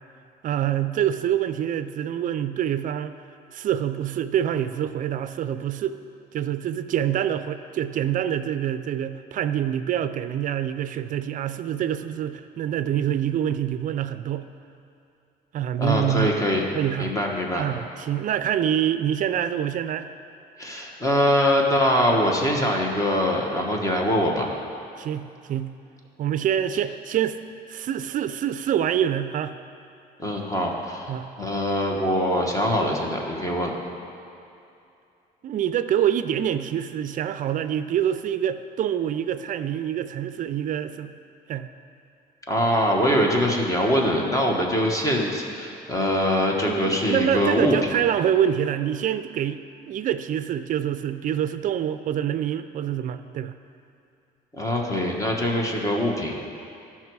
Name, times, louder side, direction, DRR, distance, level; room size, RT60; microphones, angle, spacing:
voice 1, 0.4-3.1 3.5-6.0 6.3-14.5 15.5-16.3 16.7-17.1 17.5-20.1 25.0-25.7 26.2-27.4 27.7-29.6 31.1-31.3 35.4-41.1 41.5-41.7 46.6-53.6, right 10 dB, 50° right, 11 dB, 0.4 m, -26 dB
voice 2, 15.8-16.6 17.0-17.6 20.6-24.5 30.2-33.8 42.5-47.9 54.5-56.3, equal, 20° left, 0 dB, 1.3 m, -23 dB
13.5 x 5.8 x 4.7 m, 2.6 s
cardioid pair, 110°, 17 cm